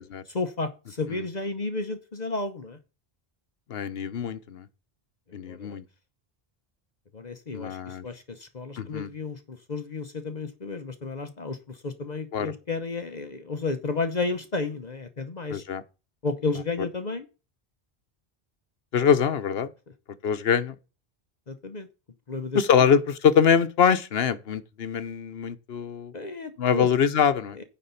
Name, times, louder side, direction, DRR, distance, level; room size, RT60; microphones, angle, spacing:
voice 1, 0.3-2.8 5.4-5.7 7.1-15.6 16.2-17.3 21.5-21.9 22.3-22.6 26.1-26.9 27.6-27.7, left 3 dB, 45° left, 1.0 m, -32 dB
voice 2, 3.7-4.7 5.3-5.8 7.5-8.0 8.8-9.1 12.3-12.5 15.5-15.8 16.8-16.9 18.9-19.7 20.2-20.7 22.5-26.1 26.6-27.6, left 7 dB, 75° left, 1.1 m, -24 dB
9.9 x 4.2 x 6.8 m
omnidirectional pair, 1.0 m